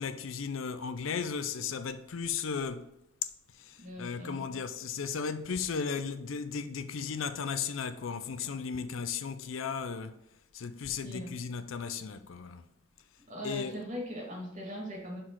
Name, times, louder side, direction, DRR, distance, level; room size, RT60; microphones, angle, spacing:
voice 1, 0.0-2.9 3.6-10.2 10.5-12.7 13.4-13.7, left 6 dB, 85° left, 0.5 m, -35 dB
voice 2, 3.8-4.5 11.0-11.3 13.3-15.2, equal, 40° right, 2.0 m, -40 dB
6.4 x 3.9 x 4.6 m
head